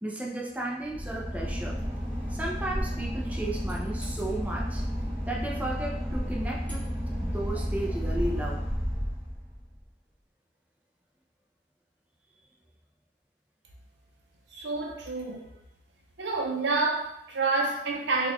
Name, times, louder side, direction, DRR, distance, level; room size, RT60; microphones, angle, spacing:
voice 1, 0.0-1.8 2.3-4.8 5.3-6.9 7.2-8.6, right 1 dB, 10° right, -3 dB, 0.5 m, -34 dB
Boat Water vehicle / Engine, 0.8-9.8, equal, 10° left, 0.9 m, -32 dB
voice 2, 14.5-15.5 16.2-18.3, right 3 dB, 70° right, 1 dB, 0.6 m, -28 dB
3.9 x 2.4 x 2.9 m, 0.82 s
head